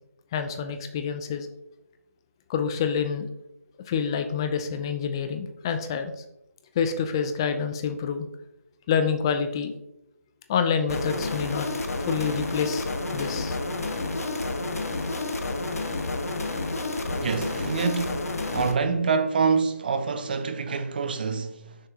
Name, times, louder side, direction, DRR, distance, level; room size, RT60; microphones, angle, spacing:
voice 1, 0.3-1.5 2.5-3.3 3.9-6.1 6.8-8.3 8.9-9.7 10.5-11.7 12.0-13.6, left 6 dB, 15° left, 0.4 m, -27 dB
sound 1, 10.9-18.7, left 2 dB, 65° left, 1.2 m, -30 dB
voice 2, 17.1-21.8, right 5 dB, 35° right, 0.5 m, -26 dB
6.6 x 4.6 x 3.6 m
figure-of-eight pair, 160°, 9 cm